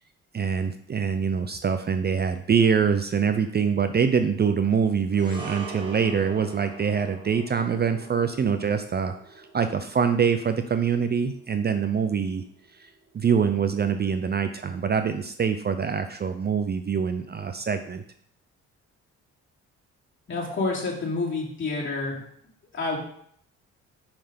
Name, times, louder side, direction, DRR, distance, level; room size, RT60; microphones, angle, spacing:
voice 1, 0.3-12.4 12.8-12.9 13.1-18.0, right 6 dB, 35° right, 9 dB, 0.5 m, -24 dB
sound 1, 5.1-13.6 13.9-14.1, right 3 dB, 15° right, 1.9 m, -44 dB
voice 2, 20.3-22.2 22.7-23.0, left 3 dB, 40° left, -4 dB, 2.9 m, -28 dB
5.8 x 5.4 x 5.1 m, 0.65 s
cardioid pair, 90°, 30 cm